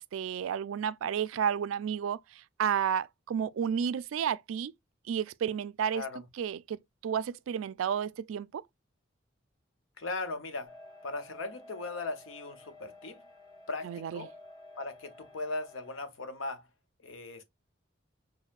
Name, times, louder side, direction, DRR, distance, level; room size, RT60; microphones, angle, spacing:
voice 1, 0.0-4.7 5.1-6.0 6.4-8.6 13.8-14.3, right 8 dB, 85° right, 0.3 m, -32 dB
voice 2, 5.9-6.2 10.0-10.7 11.0-13.2 13.7-14.3 14.8-16.6 17.0-17.4, left 3 dB, 90° left, 0.8 m, -38 dB
sound 1, 10.6-16.0, left 2 dB, 20° left, 1.1 m, -52 dB
6.3 x 2.1 x 2.4 m
head